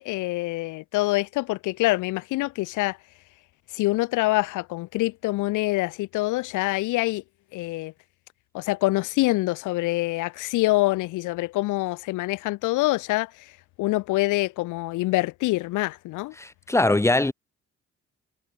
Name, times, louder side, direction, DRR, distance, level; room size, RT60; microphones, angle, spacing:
voice 1, 0.0-3.0 3.7-7.2 7.5-7.9 8.5-13.3 13.8-16.3, left 20 dB, 85° left, 0.5 m, -25 dB
voice 2, 16.4-17.3, left 2 dB, 10° left, 1.1 m, -21 dB
cardioid pair, 90°, 30 cm